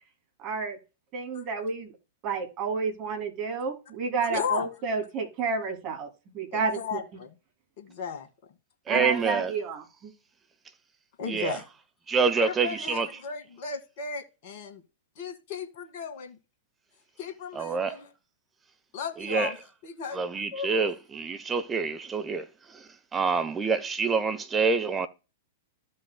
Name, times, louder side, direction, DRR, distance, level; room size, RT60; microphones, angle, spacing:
voice 1, 0.4-0.8 1.1-1.9 2.2-6.1 6.3-6.8 8.9-10.1, right 5 dB, 35° right, 2.7 m, -30 dB
voice 2, 4.2-4.7 6.5-7.3 7.8-8.3 8.9-9.3 11.2-11.6 12.3-14.8 15.2-16.4 17.2-18.1 18.9-19.6 19.8-20.2 20.5-20.9, left 6 dB, 50° left, 1.8 m, -35 dB
voice 3, 8.9-9.5 11.3-11.6 12.1-13.1 17.5-18.0 19.2-19.5 20.1-25.1, right 5 dB, 15° right, 0.9 m, -27 dB
14.5 x 5.4 x 2.2 m
figure-of-eight pair, 100°, 0 cm